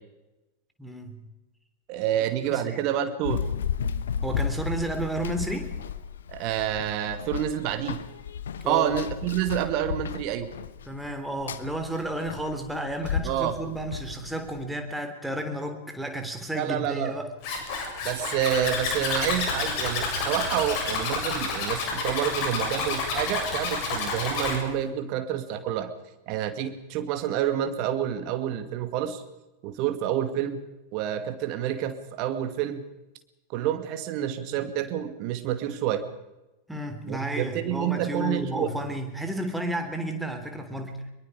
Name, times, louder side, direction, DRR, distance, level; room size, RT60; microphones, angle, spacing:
voice 1, 0.8-1.2 2.4-2.9 4.2-5.8 8.6-9.0 10.9-17.3 36.7-41.1, right 1 dB, 5° right, 5 dB, 3.6 m, -32 dB
voice 2, 1.9-3.5 6.3-8.0 8.7-10.5 13.2-13.6 16.5-17.2 18.0-25.9 26.3-29.2 29.6-30.6 30.9-32.8 33.5-36.0 37.0-38.7, right 10 dB, 40° right, 9 dB, 2.2 m, -28 dB
Run, 3.2-14.6, left 7 dB, 65° left, 1.2 m, -34 dB
Zipper (clothing), 17.4-24.6, left 4 dB, 45° left, 7.0 m, -29 dB
24.0 x 22.5 x 5.1 m, 0.99 s
figure-of-eight pair, 90°, 0 cm